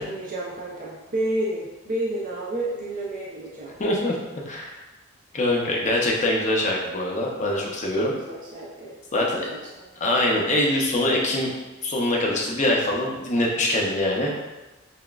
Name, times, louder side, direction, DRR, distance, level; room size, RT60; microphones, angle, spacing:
voice 1, 0.0-3.7 8.0-8.9 9.2-9.9, right 1 dB, 40° right, -6 dB, 0.6 m, -31 dB
voice 2, 3.8-4.1 4.5-4.7 5.3-8.1 9.1-9.4 10.0-11.5 11.8-14.3, left 1 dB, 35° left, -2 dB, 0.6 m, -23 dB
5.8 x 2.2 x 2.3 m, 1.1 s
head